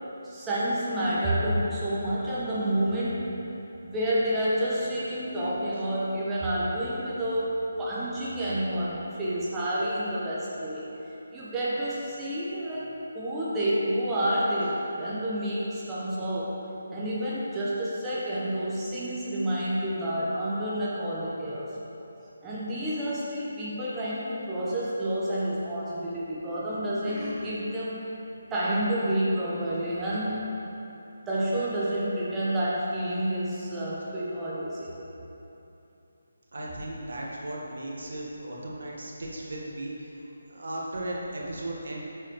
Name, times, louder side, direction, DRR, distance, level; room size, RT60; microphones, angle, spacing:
voice 1, 0.2-3.3 3.8-10.8 11.3-16.6 16.9-21.8 22.4-28.1 28.5-30.4 31.3-34.9, right 1 dB, 10° right, -9 dB, 1.1 m, -29 dB
voice 2, 36.5-40.2 40.5-42.0, right 1 dB, 60° right, -3 dB, 1.4 m, -36 dB
8.7 x 6.6 x 3.1 m, 2.9 s
figure-of-eight pair, 150°, 0 cm